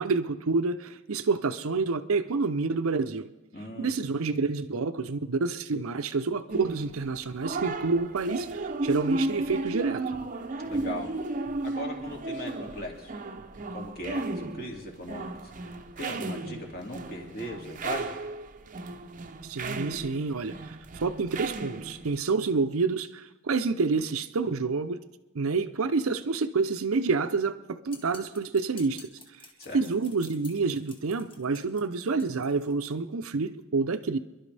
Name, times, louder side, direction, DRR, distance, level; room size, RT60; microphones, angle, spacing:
voice 1, 0.0-3.3 3.8-10.1 19.4-20.8 21.0-25.0 25.3-29.1 29.7-34.2, right 4 dB, 75° right, 11 dB, 0.6 m, -28 dB
voice 2, 3.5-3.9 10.6-11.1 11.6-13.1 13.7-18.2 29.6-29.8, left 1 dB, 45° left, 0 dB, 2.5 m, -39 dB
sound 1, 6.5-22.2, right 2 dB, 40° right, 0.7 m, -34 dB
sound 2, 27.9-32.9, left 2 dB, 25° left, 1.7 m, -51 dB
27.5 x 11.5 x 3.4 m, 1.1 s
head